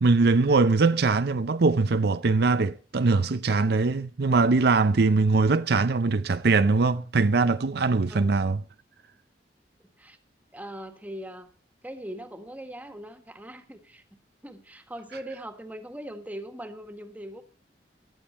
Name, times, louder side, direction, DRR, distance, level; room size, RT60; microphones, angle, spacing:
voice 1, 0.0-8.6, right 3 dB, 65° right, 0.6 m, -22 dB
voice 2, 10.5-11.5 11.8-14.0 14.4-17.4, right 1 dB, 10° right, 1.7 m, -40 dB
17.0 x 12.0 x 4.3 m
head